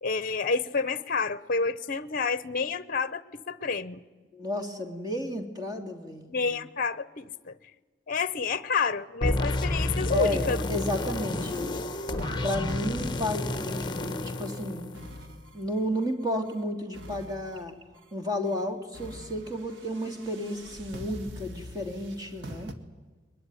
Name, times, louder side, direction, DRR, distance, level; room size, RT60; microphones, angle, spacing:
voice 1, 0.0-4.0 6.3-7.6 8.1-10.6, left 4 dB, 45° left, 16 dB, 0.8 m, -29 dB
voice 2, 4.3-6.3 10.1-11.9 12.4-14.9 15.5-17.7 18.1-22.7, left 1 dB, 20° right, 4 dB, 2.7 m, -32 dB
sound 1, 9.2-15.4, left 2 dB, 25° left, 1.1 m, -31 dB
sound 2, 11.3-16.6 16.9-18.1 18.4-18.6 18.9-22.7, equal, 85° right, 2.0 m, -44 dB
22.0 x 22.0 x 9.7 m, 1.4 s
head